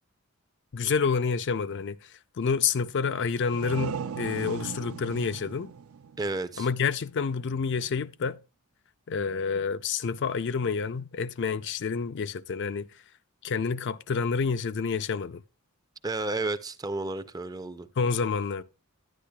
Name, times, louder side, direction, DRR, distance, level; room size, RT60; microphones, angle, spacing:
voice 1, 0.7-5.7 6.6-8.4 9.1-13.0 13.4-15.4 18.0-18.6, left 5 dB, 55° left, 0.4 m, -28 dB
sound 1, 3.3-6.9, right 6 dB, 70° right, 0.5 m, -37 dB
voice 2, 6.2-6.7 16.0-17.9, right 2 dB, 15° right, 0.4 m, -32 dB
10.5 x 10.0 x 2.3 m
head